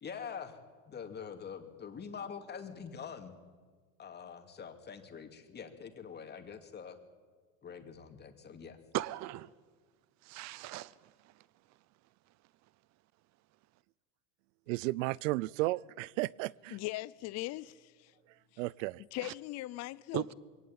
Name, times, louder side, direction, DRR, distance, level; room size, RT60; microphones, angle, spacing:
voice 1, 0.0-0.6 0.9-3.3 4.0-7.0 7.6-8.8, left 6 dB, 25° left, 2.4 m, -45 dB
voice 2, 8.9-9.5 10.2-11.4 19.2-19.3 20.1-20.3, right 15 dB, 45° right, 0.7 m, -38 dB
voice 3, 14.7-16.8 18.6-19.0, right 20 dB, 85° right, 0.6 m, -34 dB
voice 4, 16.7-18.1 19.1-20.3, left 17 dB, 45° left, 0.6 m, -40 dB
22.5 x 17.5 x 8.8 m
supercardioid pair, 130°, 37 cm